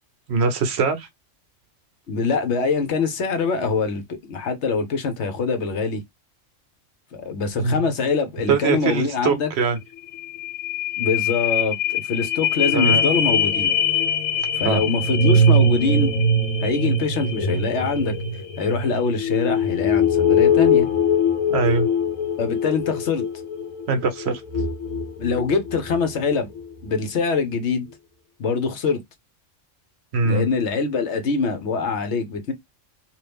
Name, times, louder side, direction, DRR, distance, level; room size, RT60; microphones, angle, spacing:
voice 1, 0.3-1.1 7.6-7.8 8.5-9.8 12.7-13.0 14.6-14.8 21.5-21.9 23.9-24.4 30.1-30.5, right 4 dB, 60° right, 0.8 m, -22 dB
voice 2, 2.1-6.0 7.1-9.5 11.0-13.8 14.6-16.1 16.6-18.1 18.6-20.9 22.4-23.2 25.2-26.5 26.8-27.9 28.4-29.0 30.2-32.5, left 4 dB, 65° left, 1.0 m, -24 dB
sound 1, 9.8-9.9 10.1-26.1 26.6-26.7, left 3 dB, 85° left, 1.1 m, -22 dB
2.8 x 2.5 x 3.3 m
omnidirectional pair, 1.3 m